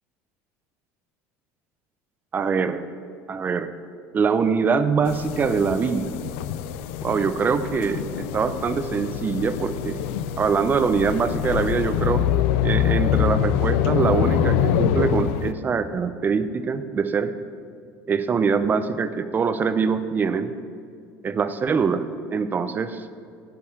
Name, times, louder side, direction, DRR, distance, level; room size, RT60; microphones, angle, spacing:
voice 1, 2.3-2.8 3.3-3.7 4.1-6.1 7.0-10.0 10.4-12.2 12.6-17.3 18.1-20.5 21.2-22.0 22.3-23.0, right 5 dB, 30° right, 12 dB, 0.6 m, -23 dB
sound 1, 5.1-15.5, left 10 dB, 85° left, 0.4 m, -25 dB
10.5 x 5.4 x 8.6 m, 2.4 s
cardioid pair, 120°, 7 cm